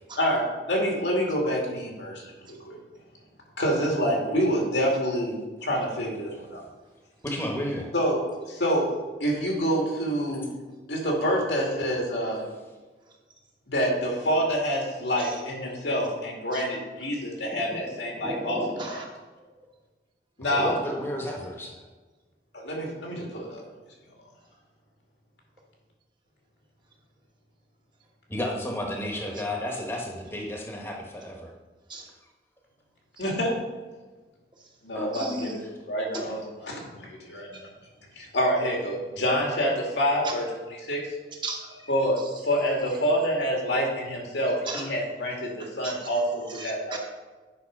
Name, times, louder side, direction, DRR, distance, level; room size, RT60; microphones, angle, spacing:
voice 1, 0.2-2.2 2.6-2.8 3.6-6.6 7.9-8.2 8.5-8.9 9.2-10.5 10.9-12.5 13.7-18.6 18.9-19.0 20.4-20.8 22.5-23.6 33.2-33.5 34.8-35.5 35.9-37.7 38.2-40.5 40.9-41.1 41.9-47.0, equal, 85° left, -1 dB, 2.5 m, -27 dB
voice 2, 7.2-7.9 20.5-21.8 28.3-31.5 34.9-35.6, left 1 dB, 15° left, 0 dB, 1.1 m, -32 dB
voice 3, 18.2-19.0 29.3-29.4 31.9-32.1 34.6-34.7 35.1-35.5 36.1-36.2 37.5-37.6 40.2-40.3 41.4-42.3 44.6-44.9 45.8-45.9 46.5-47.0, right 2 dB, 25° right, 0 dB, 1.2 m, -36 dB
8.6 x 5.8 x 5.3 m, 1.3 s
head